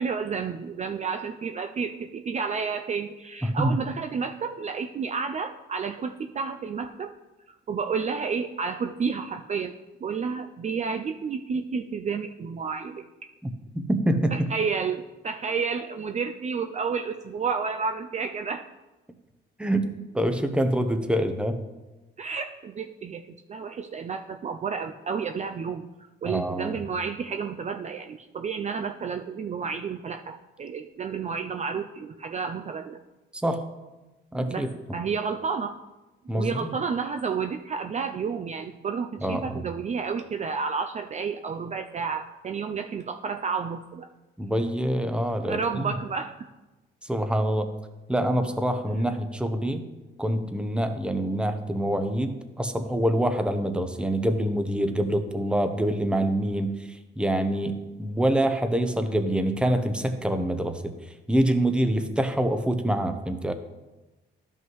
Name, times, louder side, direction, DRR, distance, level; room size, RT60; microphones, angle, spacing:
voice 1, 0.0-7.1 7.7-9.7 10.0-13.0 14.3-18.7 22.2-23.2 23.5-25.9 26.2-33.0 34.5-34.7 34.9-35.7 36.3-44.1 45.5-46.3, right 5 dB, 35° right, 6 dB, 0.4 m, -31 dB
voice 2, 3.4-3.8 13.4-14.5 19.6-21.6 26.2-26.8 33.4-33.6 34.3-34.7 36.3-36.7 39.2-39.6 44.4-45.9 47.0-47.7 48.1-49.8 50.2-63.5, right 1 dB, 5° right, 7 dB, 0.7 m, -26 dB
12.5 x 5.5 x 3.1 m, 1.1 s
cardioid pair, 90°, 20 cm